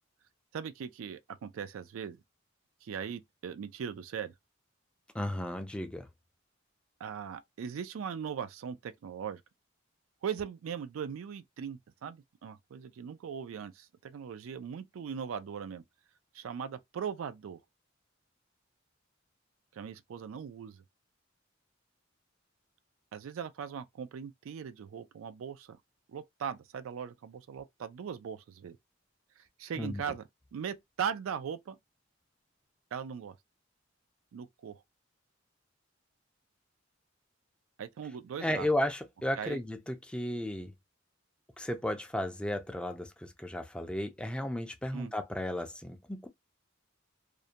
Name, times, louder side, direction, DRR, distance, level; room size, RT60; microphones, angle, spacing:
voice 1, 0.5-2.2 2.8-4.3 7.0-9.4 10.2-15.8 16.3-17.6 19.7-20.8 23.1-25.8 26.1-28.8 29.6-30.2 30.5-31.8 32.9-33.3 34.3-34.8 37.8-38.7 39.4-39.6 44.9-45.1, right 7 dB, 85° right, 0.3 m, -39 dB
voice 2, 5.1-6.1 29.8-30.1 38.4-40.7 41.6-46.3, left 1 dB, 5° left, 0.3 m, -34 dB
2.5 x 2.1 x 2.7 m
head